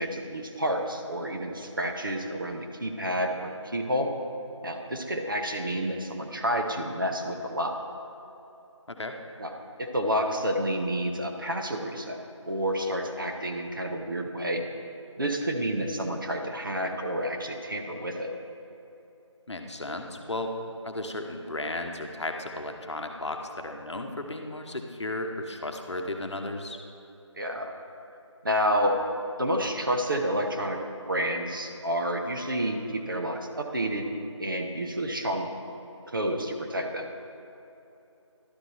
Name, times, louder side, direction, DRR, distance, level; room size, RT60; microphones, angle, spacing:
voice 1, 0.0-4.1 4.6-7.7 9.4-9.5 9.8-12.2 12.5-14.6 15.2-18.3 27.4-27.7 28.4-29.0 29.4-30.8 31.1-34.1 34.4-35.5 36.1-37.1, equal, 45° right, 3 dB, 0.7 m, -29 dB
voice 2, 19.5-20.5 20.8-26.8, left 2 dB, 65° left, 4 dB, 0.9 m, -34 dB
11.5 x 6.1 x 4.0 m, 2.9 s
figure-of-eight pair, 170°, 16 cm